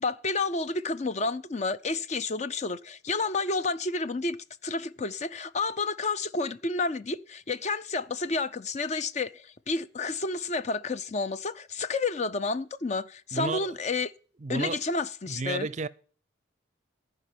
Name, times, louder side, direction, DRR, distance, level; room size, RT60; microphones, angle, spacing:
voice 1, 0.0-4.4 4.6-14.1 14.5-15.7, left 3 dB, 35° left, 0.5 m, -30 dB
voice 2, 13.3-13.7 14.4-14.8 15.3-15.9, right 3 dB, 35° right, 0.5 m, -32 dB
14.5 x 5.4 x 9.2 m
head